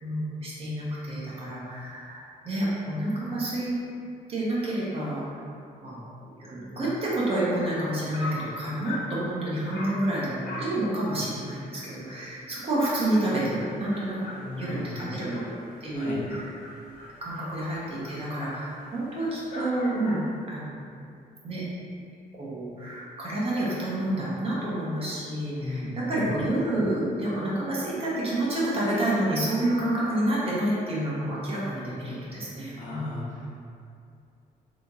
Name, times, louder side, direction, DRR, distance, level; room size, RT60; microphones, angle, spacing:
voice 1, 0.0-3.7 4.3-5.4 5.8-16.4 17.2-20.2 20.5-20.8 21.4-21.6 22.3-33.3, right 1 dB, 40° right, -7 dB, 1.2 m, -29 dB
Dog, 8.1-8.5 8.8-9.1 9.7-10.0 10.4-10.8 11.1-11.2 11.6-11.7 12.1-12.2 12.5-20.3, left 1 dB, 80° left, 1.0 m, -41 dB
voice 2, 14.3-15.0 15.9-16.2 25.5-26.3 32.5-33.5, left 3 dB, 55° left, -6 dB, 0.9 m, -37 dB
3.3 x 3.0 x 4.0 m, 2.4 s
cardioid pair, 135°, 16 cm